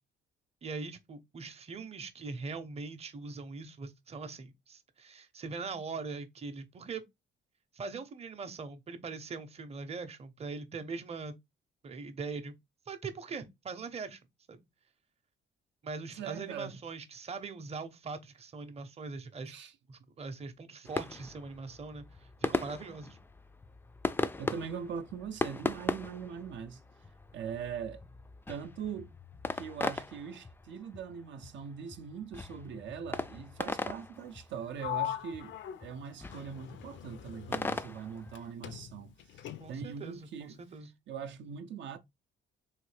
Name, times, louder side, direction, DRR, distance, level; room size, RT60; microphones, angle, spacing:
voice 1, 0.6-7.0 7.7-11.4 11.8-12.6 12.9-14.2 14.5-14.6 15.8-19.5 19.9-23.2 39.6-40.9, right 4 dB, 30° right, 0.7 m, -41 dB
voice 2, 16.1-16.7 19.4-19.7 24.4-26.8 27.3-28.0 28.5-29.1 29.5-35.5 35.8-40.6 41.1-42.0, right 7 dB, 70° right, 0.5 m, -41 dB
sound 1, 20.8-38.5, left 3 dB, 10° left, 0.3 m, -39 dB
Sliding door, 34.8-38.4 38.6-40.0, left 12 dB, 70° left, 0.5 m, -41 dB
3.1 x 2.7 x 3.2 m
cardioid pair, 90°, 20 cm